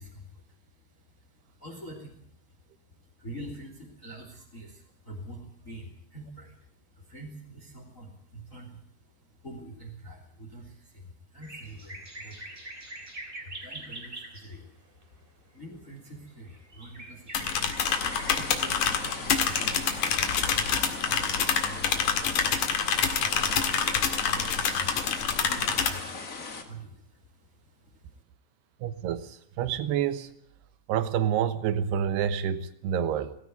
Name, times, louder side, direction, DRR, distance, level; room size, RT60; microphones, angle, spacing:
voice 1, 0.0-28.2, right 1 dB, 20° left, 3.1 m, -46 dB
sound 1, 11.4-14.5 15.0-15.1 15.9-16.0 16.3-20.8, right 1 dB, 15° right, 2.6 m, -44 dB
sound 2, 17.3-25.9, left 7 dB, 55° left, 2.8 m, -27 dB
sound 3, 17.8-26.6, left 4 dB, 80° left, 0.7 m, -39 dB
voice 2, 28.8-30.3 30.9-33.4, right 9 dB, 75° right, 3.0 m, -28 dB
17.5 x 16.5 x 9.5 m
omnidirectional pair, 5.1 m